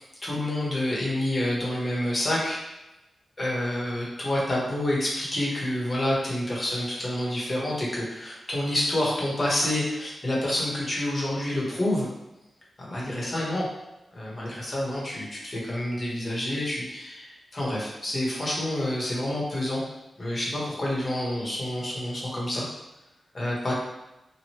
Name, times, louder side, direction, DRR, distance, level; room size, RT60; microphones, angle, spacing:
voice 1, 0.0-2.6 3.4-12.1 12.9-13.7 14.1-19.8 20.2-22.7 23.3-23.8, left 1 dB, 40° left, -5 dB, 1.1 m, -28 dB
3.0 x 2.5 x 2.9 m, 0.97 s
cardioid pair, 65°, 0 cm